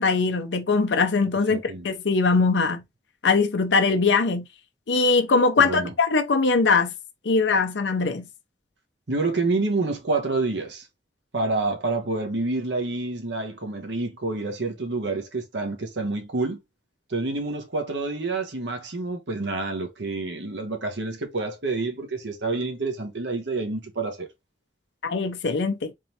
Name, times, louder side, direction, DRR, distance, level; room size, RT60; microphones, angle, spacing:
voice 1, 0.0-2.8 3.2-4.5 4.9-6.9 7.3-8.3 25.0-25.9, left 4 dB, 75° left, 0.6 m, -21 dB
voice 2, 1.5-1.9 5.6-5.9 9.1-10.9 11.3-16.6 17.1-24.3, right 3 dB, 80° right, 1.1 m, -28 dB
3.7 x 3.2 x 2.7 m
head